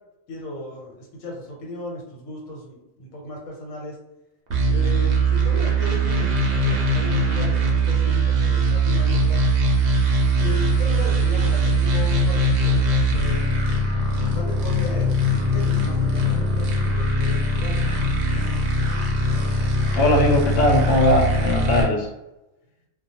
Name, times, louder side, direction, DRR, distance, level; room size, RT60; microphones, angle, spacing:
voice 1, 0.3-4.0 4.7-9.4 10.4-13.5 14.1-15.1 15.5-18.0, left 1 dB, 85° left, -2 dB, 1.2 m, -35 dB
sound 1, 4.5-21.8, right 1 dB, 60° right, 0.7 m, -21 dB
voice 2, 19.9-22.1, equal, 60° left, 1 dB, 0.7 m, -19 dB
2.3 x 2.2 x 2.8 m, 0.94 s
omnidirectional pair, 1.3 m